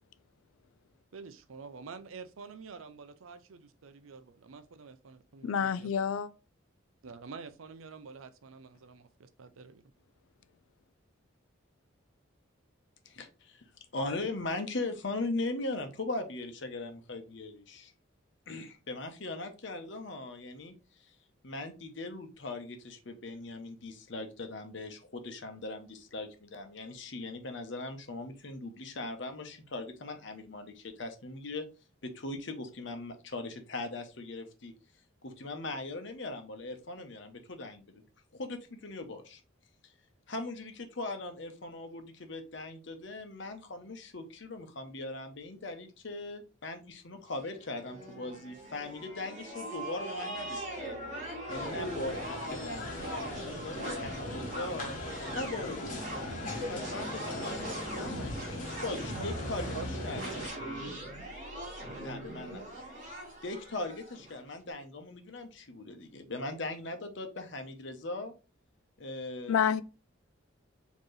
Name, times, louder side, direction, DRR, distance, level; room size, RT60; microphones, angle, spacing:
voice 1, 1.1-5.9 7.0-9.8 59.7-60.5, right 5 dB, 80° right, 0.5 m, -47 dB
voice 2, 5.4-6.3 69.5-69.8, left 7 dB, 90° left, 0.4 m, -28 dB
voice 3, 13.1-17.9 18.5-21.1 21.4-31.7 32.0-34.7 35.2-38.0 38.3-39.4 39.8-39.9 40.3-51.0 51.5-55.0 55.3-56.2 56.7-59.7 60.0-60.5 62.0-62.6 63.1-68.3 69.0-69.6, left 2 dB, 60° left, 0.8 m, -40 dB
sound 1, 47.3-64.4, right 1 dB, 40° right, 1.7 m, -41 dB
sound 2, 51.5-60.5, left 1 dB, 40° left, 1.2 m, -40 dB
4.5 x 3.0 x 3.1 m
head